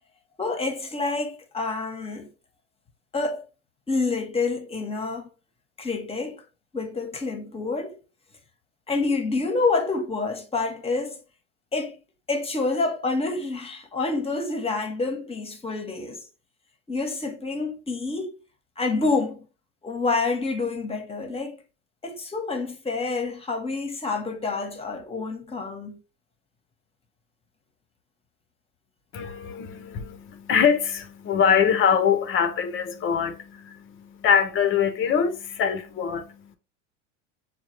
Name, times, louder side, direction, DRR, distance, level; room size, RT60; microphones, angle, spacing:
voice 1, 0.4-2.3 3.1-3.4 3.9-5.3 5.8-6.4 6.7-8.0 8.9-11.2 11.7-12.0 12.3-16.2 16.9-18.3 18.8-19.4 19.8-21.6 22.0-26.0, left 3 dB, 15° left, 1.0 m, -28 dB
voice 2, 29.1-36.6, left 7 dB, 35° left, 0.7 m, -23 dB
6.5 x 2.3 x 3.0 m
hypercardioid pair, 105°, 38 cm